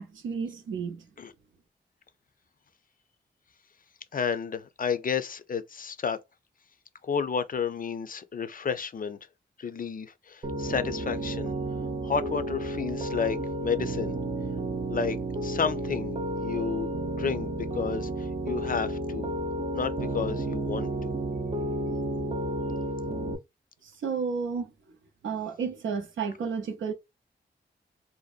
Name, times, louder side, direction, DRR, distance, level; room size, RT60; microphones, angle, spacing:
voice 1, 0.0-1.1 23.8-24.7 25.2-26.9, right 5 dB, 85° right, 0.5 m, -32 dB
voice 2, 4.1-6.2 7.0-9.2 9.6-11.5 12.0-14.2 14.9-15.2 15.4-19.3 19.7-21.1, left 6 dB, 45° left, 0.4 m, -31 dB
Piano, 10.4-23.4, right 1 dB, 30° right, 0.4 m, -32 dB
2.6 x 2.1 x 2.4 m
cardioid pair, 45°, 19 cm